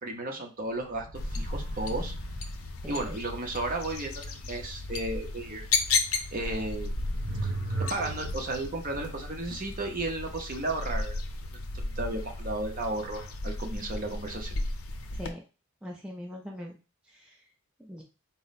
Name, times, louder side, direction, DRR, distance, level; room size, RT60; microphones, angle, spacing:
voice 1, 0.0-2.1 2.8-5.7 6.3-6.9 7.4-7.5 7.9-11.2 11.8-14.6, right 2 dB, 40° right, 3 dB, 0.7 m, -34 dB
sound 1, 0.9-2.6 5.7-5.8 6.7-8.6, right 2 dB, 55° right, 1.3 m, -36 dB
sound 2, 1.1-15.3, left 3 dB, 85° left, 0.6 m, -34 dB
voice 2, 2.8-3.2 15.2-15.4 15.8-16.8 17.1-17.3 17.8-18.0, equal, 5° right, -2 dB, 0.4 m, -41 dB
4.2 x 2.1 x 4.0 m, 0.33 s
head